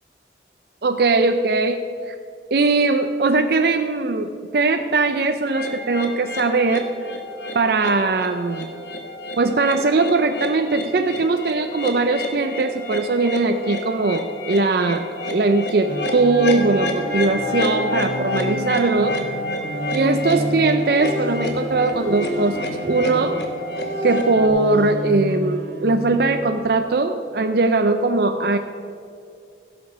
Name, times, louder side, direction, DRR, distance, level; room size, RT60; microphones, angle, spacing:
voice 1, 0.8-2.1 2.5-6.9 7.5-8.8 9.4-15.1 15.3-19.2 19.9-23.4 24.0-28.6, right 3 dB, 60° right, 6 dB, 0.5 m, -20 dB
sound 1, 5.5-24.5, left 1 dB, 70° left, 1.3 m, -29 dB
sound 2, 15.9-26.5, right 1 dB, 85° right, 1.3 m, -30 dB
sound 3, 19.0-24.1, right 1 dB, 20° right, 1.8 m, -39 dB
15.5 x 6.9 x 5.2 m, 2.5 s
head